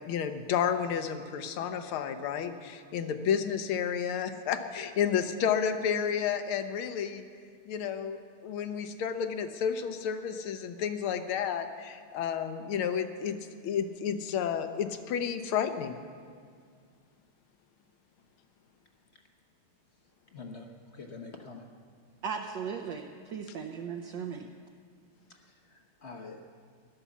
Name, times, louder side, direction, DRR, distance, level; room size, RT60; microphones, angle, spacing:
voice 1, 0.1-7.2 7.7-13.4 13.6-16.0, left 8 dB, 75° left, 9 dB, 1.7 m, -31 dB
voice 2, 20.3-21.7 25.3-26.4, left 4 dB, 45° left, 2 dB, 0.9 m, -46 dB
voice 3, 22.2-24.5, right 6 dB, 65° right, 3 dB, 1.3 m, -37 dB
15.5 x 11.5 x 7.2 m, 2.1 s
omnidirectional pair, 2.4 m